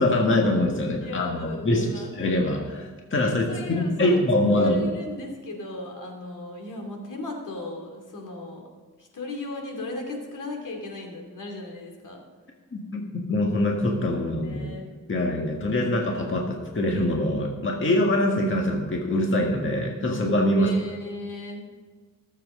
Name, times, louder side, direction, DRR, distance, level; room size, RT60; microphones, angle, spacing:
voice 1, 0.0-4.8 12.7-14.6 15.1-20.7, left 1 dB, 40° left, 0 dB, 1.7 m, -24 dB
voice 2, 1.0-2.1 3.2-4.2 4.5-8.6 9.0-12.2 14.4-14.9 20.5-21.6, left 2 dB, 70° left, 1 dB, 2.7 m, -36 dB
19.5 x 7.6 x 3.8 m, 1.5 s
cardioid pair, 85°, 32 cm